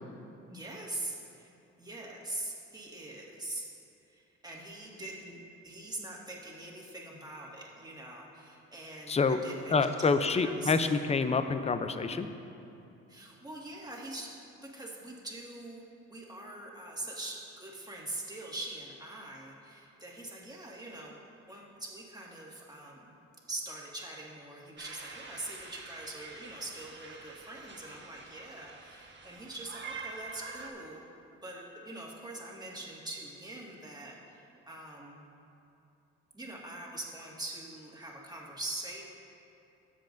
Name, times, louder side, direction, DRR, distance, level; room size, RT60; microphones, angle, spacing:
voice 1, 0.5-1.5 1.8-3.6 4.1-10.7 13.1-14.3 14.6-15.8 16.1-21.2 21.5-23.1 23.5-31.0 31.4-35.2 36.3-39.0, right 2 dB, 15° right, -3 dB, 1.9 m, -43 dB
voice 2, 9.1-9.4 9.7-12.3, left 4 dB, 20° left, 9 dB, 0.5 m, -27 dB
sound 1, 24.8-30.7, right 4 dB, 40° right, 1.3 m, -46 dB
16.0 x 7.4 x 2.6 m, 2.7 s
cardioid pair, 90°, 30 cm